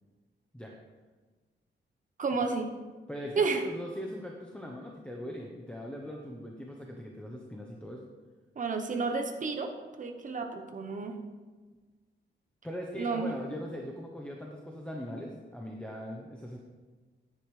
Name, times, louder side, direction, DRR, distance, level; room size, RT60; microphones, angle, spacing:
voice 1, 2.2-2.7 3.4-3.6 8.6-9.7 10.0-11.1 12.9-13.3, right 4 dB, 40° right, 4 dB, 0.9 m, -31 dB
voice 2, 3.1-8.0 12.6-16.6, equal, 5° left, -1 dB, 0.9 m, -40 dB
10.5 x 9.7 x 3.3 m, 1.3 s
wide cardioid pair, 150°, 20 cm